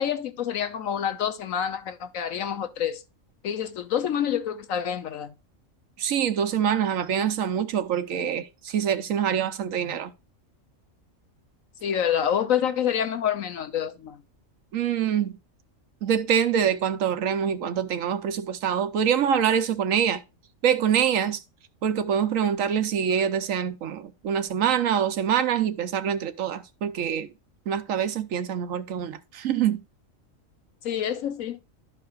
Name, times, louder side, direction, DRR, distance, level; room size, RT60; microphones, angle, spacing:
voice 1, 0.0-3.0 3.4-5.3 11.8-14.2 30.8-31.6, left 9 dB, 85° left, 1.3 m, -27 dB
voice 2, 6.0-10.1 14.7-15.4 16.0-20.2 20.6-21.4 21.8-27.3 27.7-29.8, right 8 dB, 80° right, 1.2 m, -25 dB
12.5 x 4.8 x 2.4 m
omnidirectional pair, 1.4 m